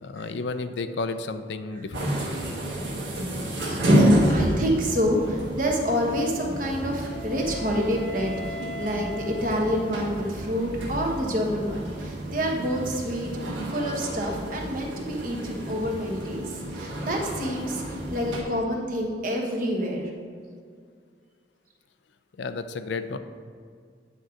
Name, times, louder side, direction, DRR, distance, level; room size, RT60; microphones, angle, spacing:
voice 1, 0.0-2.1 22.4-23.2, left 3 dB, 80° left, 10 dB, 0.4 m, -32 dB
sound 1, 1.9-18.4, equal, 85° right, 1.9 m, -29 dB
voice 2, 4.0-13.3 13.7-20.1, equal, 50° right, 0 dB, 1.2 m, -28 dB
Wind instrument woodwind instrument, 6.3-10.5, left 2 dB, 5° left, 1.2 m, -40 dB
9.0 x 3.8 x 5.8 m, 2.1 s
head